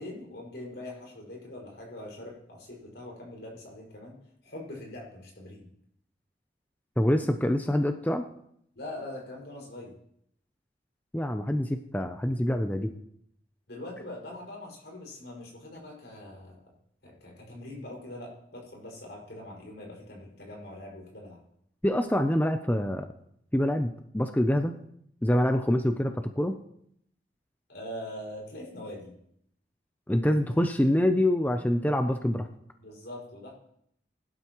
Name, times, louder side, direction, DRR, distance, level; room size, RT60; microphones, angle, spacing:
voice 1, 0.0-5.7 8.8-10.0 13.7-16.7 17.0-21.4 27.7-29.1 32.8-33.6, left 1 dB, 75° left, -2 dB, 5.6 m, -42 dB
voice 2, 7.0-8.2 11.1-12.9 21.8-23.1 23.5-24.7 25.2-26.5 30.1-32.5, left 1 dB, 10° left, 6 dB, 0.5 m, -25 dB
21.0 x 11.5 x 3.0 m, 0.71 s
head